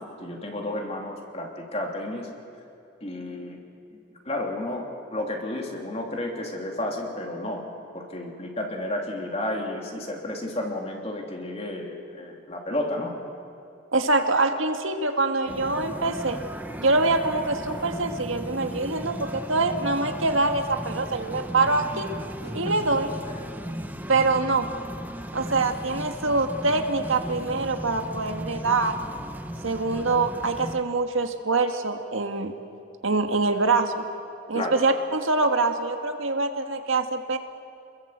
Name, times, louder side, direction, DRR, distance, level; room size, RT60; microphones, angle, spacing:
voice 1, 0.0-2.3 3.0-3.6 3.9-7.7 7.9-13.1 22.6-22.8 23.3-23.4 34.5-34.8, left 1 dB, 30° left, 1 dB, 3.1 m, -32 dB
voice 2, 13.9-16.4 16.8-22.1 22.5-23.1 24.1-24.7 25.3-28.9 29.6-32.5 33.0-34.0 34.5-37.4, right 3 dB, 75° right, 6 dB, 1.7 m, -24 dB
sound 1, 15.5-30.8, equal, 10° right, 0.9 m, -36 dB
28.0 x 21.5 x 8.0 m, 2.7 s
head